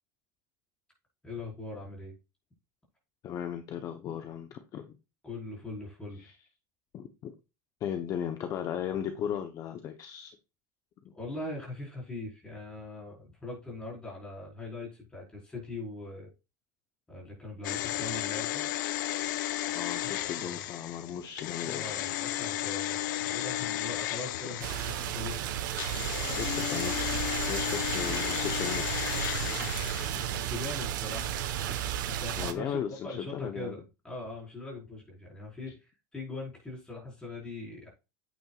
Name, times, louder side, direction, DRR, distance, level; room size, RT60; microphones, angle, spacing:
voice 1, 1.2-2.1 5.2-6.3 11.1-16.3 17.1-18.7 19.9-20.1 20.4-20.6 21.6-25.5 29.3-29.7 30.0-31.5 32.1-37.9, left 2 dB, 10° left, -3 dB, 4.9 m, -41 dB
voice 2, 3.2-5.0 6.2-6.3 6.9-7.3 7.8-10.4 11.0-11.1 19.7-21.8 26.3-27.2 27.5-28.9 32.4-33.7, left 9 dB, 35° left, 7 dB, 0.9 m, -36 dB
sound 1, 17.6-25.2 25.7-30.5 30.7-30.8, left 14 dB, 80° left, 0.8 m, -34 dB
sound 2, 24.6-32.5, right 11 dB, 85° right, 1.3 m, -33 dB
8.9 x 8.7 x 2.4 m, 0.28 s
supercardioid pair, 150°, 10 cm